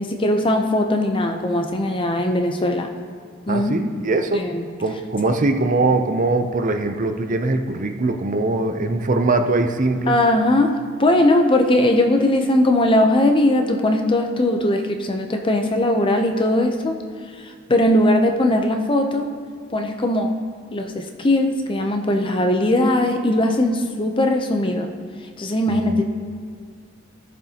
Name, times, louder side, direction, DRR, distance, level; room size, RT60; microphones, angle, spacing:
voice 1, 0.0-2.9 3.5-3.7 4.3-4.7 10.1-17.0 17.4-19.3 19.7-20.3 20.7-24.9 25.4-26.0, left 1 dB, 25° left, 5 dB, 0.6 m, -19 dB
voice 2, 3.5-4.4 4.8-10.1 25.7-26.0, right 2 dB, 40° right, 6 dB, 0.6 m, -21 dB
15.0 x 7.0 x 2.9 m, 2.2 s
head